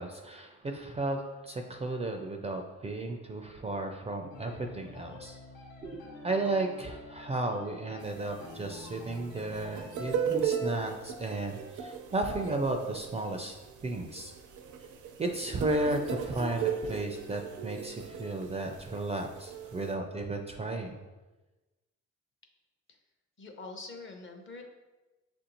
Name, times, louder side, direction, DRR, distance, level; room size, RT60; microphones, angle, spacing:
voice 1, 0.0-5.4 5.8-13.6 13.8-14.3 15.2-21.0, right 2 dB, 20° right, 4 dB, 0.4 m, -34 dB
sound 1, 4.3-10.4, left 2 dB, 85° left, 0.9 m, -49 dB
sound 2, 8.0-19.9, right 7 dB, 80° right, 0.5 m, -37 dB
voice 2, 23.4-24.6, left 3 dB, 40° left, 4 dB, 0.7 m, -44 dB
6.0 x 2.6 x 2.9 m, 1.1 s
cardioid pair, 90°, 30 cm